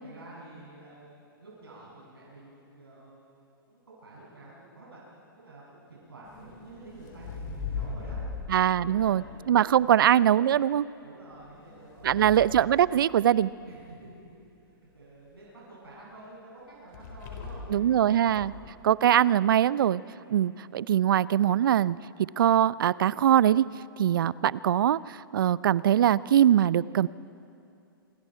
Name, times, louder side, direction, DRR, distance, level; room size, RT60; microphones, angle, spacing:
voice 1, 0.0-5.0 5.4-9.9 11.0-12.4 13.6-14.1 14.5-18.2 20.2-20.7, right 2 dB, 80° right, -6 dB, 7.4 m, -49 dB
sound 1, 6.2-10.3 11.3-13.6 16.9-17.8 18.2-18.7, left 5 dB, 50° left, 4.7 m, -40 dB
voice 2, 8.5-10.9 12.0-13.5 17.7-18.5 18.8-20.0 20.3-22.0 22.4-23.6 24.0-27.1, right 10 dB, 65° right, 21 dB, 0.5 m, -22 dB
27.0 x 24.5 x 4.6 m, 2.6 s
hypercardioid pair, 115°, 12 cm